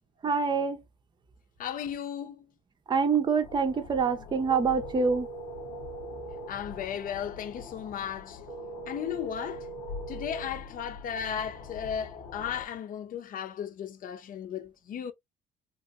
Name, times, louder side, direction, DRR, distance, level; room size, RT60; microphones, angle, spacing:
voice 1, 0.2-0.8 2.9-5.3, right 5 dB, 25° right, 0.6 m, -26 dB
voice 2, 1.6-2.5 6.5-8.4 8.9-9.7 10.1-15.1, left 8 dB, 55° left, 0.7 m, -35 dB
sound 1, 3.4-12.7, left 5 dB, 90° left, 0.9 m, -45 dB
sound 2, 4.5-6.5 8.5-10.5, right 4 dB, 90° right, 1.0 m, -41 dB
3.0 x 2.9 x 2.5 m
cardioid pair, 110°, 17 cm